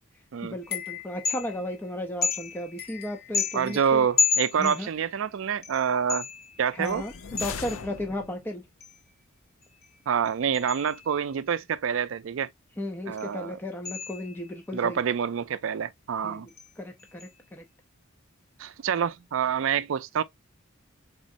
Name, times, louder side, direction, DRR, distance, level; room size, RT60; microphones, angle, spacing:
voice 1, 0.4-4.1 4.6-4.9 6.7-8.6 12.8-15.0 16.2-16.4 16.8-17.6, left 1 dB, 10° left, 0.5 m, -35 dB
sound 1, 0.6-1.8 2.2-5.2 5.6-8.0 8.8-9.1 9.6-11.3 13.2-13.4 13.9-14.6 16.5-16.7 17.0-17.4, left 6 dB, 50° left, 0.9 m, -32 dB
voice 2, 3.5-6.2 6.6-7.0 10.1-12.5 13.1-13.5 14.7-16.5 18.6-20.2, right 7 dB, 70° right, 0.4 m, -27 dB
sound 2, 6.8-8.6, left 5 dB, 90° left, 0.6 m, -39 dB
4.2 x 3.7 x 2.5 m
head